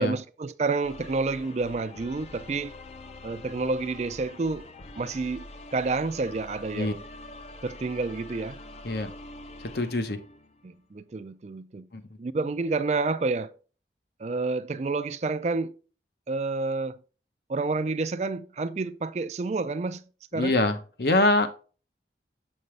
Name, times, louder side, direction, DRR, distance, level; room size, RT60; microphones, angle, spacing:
voice 1, 0.0-2.7 3.2-4.7 5.0-7.0 7.6-8.6 10.6-11.9 12.2-13.5 14.2-15.8 16.3-17.0 17.5-20.0 20.3-20.6, right 3 dB, 40° right, 0.4 m, -29 dB
sound 1, 0.8-10.8, left 2 dB, 35° left, 0.5 m, -45 dB
voice 2, 9.7-10.2 11.9-12.0 20.3-21.5, left 2 dB, 65° left, 0.9 m, -24 dB
7.7 x 5.3 x 3.2 m
head